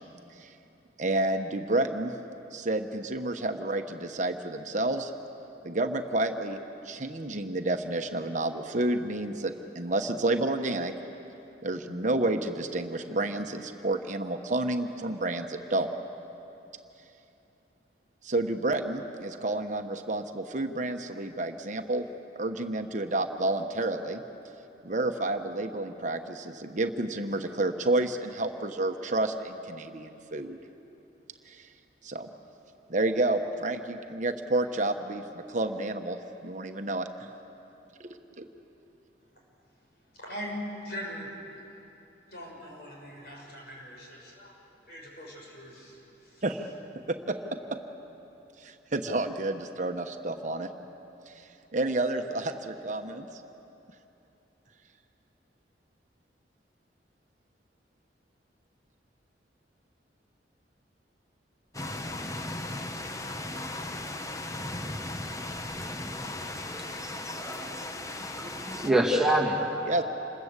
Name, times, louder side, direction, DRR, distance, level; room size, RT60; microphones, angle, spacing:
voice 1, 1.0-2.1 2.5-5.1 5.6-6.6 6.8-10.9 11.6-15.9 18.2-22.1 22.3-24.2 24.8-30.6 31.5-31.7 32.0-32.3 32.9-36.2 36.4-37.1 38.0-38.5 46.4-46.7 47.1-47.4 48.6-50.7 51.3-51.4 51.7-53.3 68.8-69.0 69.9-70.0, right 2 dB, 45° right, 5 dB, 1.1 m, -30 dB
voice 2, 40.1-40.5 40.8-41.3 42.3-44.6 44.9-46.4, equal, 60° left, -2 dB, 6.7 m, -42 dB
sound 1, 61.7-68.9, left 2 dB, 20° left, 0.9 m, -36 dB
voice 3, 66.7-67.9 68.2-69.8, right 1 dB, 5° right, -2 dB, 2.1 m, -28 dB
28.0 x 21.0 x 8.2 m, 3.0 s
head